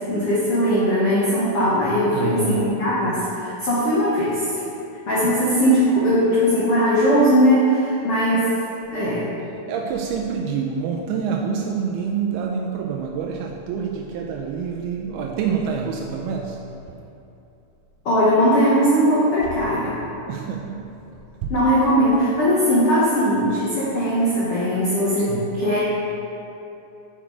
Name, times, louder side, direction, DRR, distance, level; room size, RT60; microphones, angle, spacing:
voice 1, 0.1-4.4 5.1-8.5 8.9-9.2 18.0-20.0 21.5-25.8, equal, 90° left, -9 dB, 1.3 m, -19 dB
voice 2, 2.1-2.9 5.2-5.5 8.3-8.4 9.4-16.7 20.3-21.0 21.4-21.7 25.2-25.8, right 6 dB, 80° right, 0 dB, 2.4 m, -27 dB
6.7 x 6.5 x 4.9 m, 2.8 s
omnidirectional pair, 4.7 m